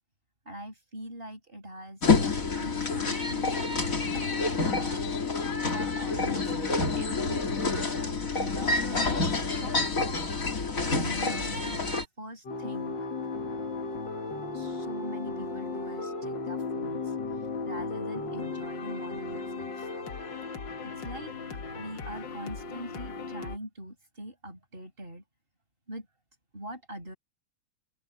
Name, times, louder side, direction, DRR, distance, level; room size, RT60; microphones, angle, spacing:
voice 1, 0.4-2.0 2.3-3.6 4.0-5.1 5.7-6.5 7.0-7.9 8.3-9.9 10.9-13.0 14.5-17.0 17.6-19.9 20.8-21.3 21.7-25.2 25.9-26.1 26.5-27.2, equal, 30° right, 6.4 m, -42 dB
sound 1, 2.0-12.0, left 4 dB, 45° left, 3.2 m, -28 dB
sound 2, 12.5-23.6, left 3 dB, 75° left, 2.5 m, -36 dB
open air
omnidirectional pair, 2.0 m